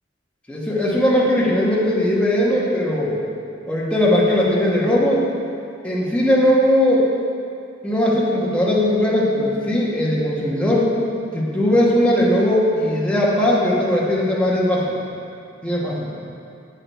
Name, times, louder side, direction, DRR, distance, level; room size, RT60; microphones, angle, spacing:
voice 1, 0.5-3.2 3.7-5.2 5.8-7.1 7.8-10.9 11.3-15.0 15.6-16.1, left 1 dB, 5° left, -6 dB, 1.1 m, -19 dB
8.4 x 5.0 x 4.4 m, 2.5 s
head